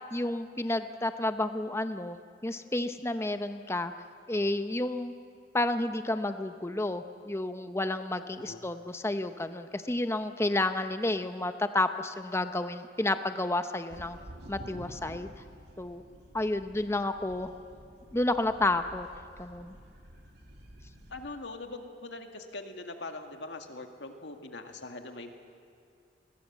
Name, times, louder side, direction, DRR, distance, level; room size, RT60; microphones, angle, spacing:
voice 1, 0.1-2.2 2.4-3.9 4.3-5.1 5.5-14.2 14.5-15.3 15.8-16.0 16.3-17.5 18.1-19.1 19.4-19.8, left 2 dB, 15° left, 9 dB, 0.7 m, -30 dB
voice 2, 8.4-8.7 21.1-25.3, left 2 dB, 65° left, 5 dB, 2.0 m, -42 dB
sound 1, 13.9-21.3, equal, 60° right, 2.8 m, -50 dB
26.5 x 21.0 x 7.4 m, 2.3 s
head